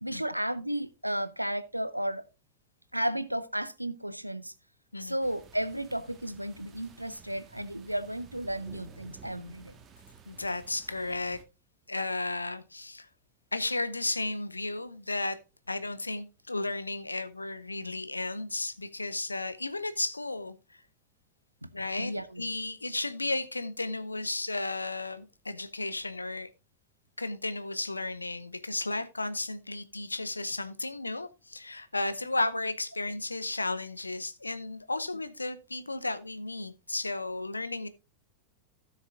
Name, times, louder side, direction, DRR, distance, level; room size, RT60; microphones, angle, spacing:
voice 1, 0.0-2.2 2.9-4.5 5.0-9.8 21.6-21.7 22.0-22.5, right 1 dB, 90° right, 0.6 m, -33 dB
sound 1, 5.2-11.4, right 6 dB, 25° right, 1.5 m, -53 dB
voice 2, 10.3-11.4 11.9-13.1 13.5-15.4 15.7-20.8 21.7-22.1 22.4-26.5 27.2-37.9, left 2 dB, 80° left, 0.7 m, -34 dB
16.0 x 6.5 x 2.5 m
figure-of-eight pair, 90°, 0 cm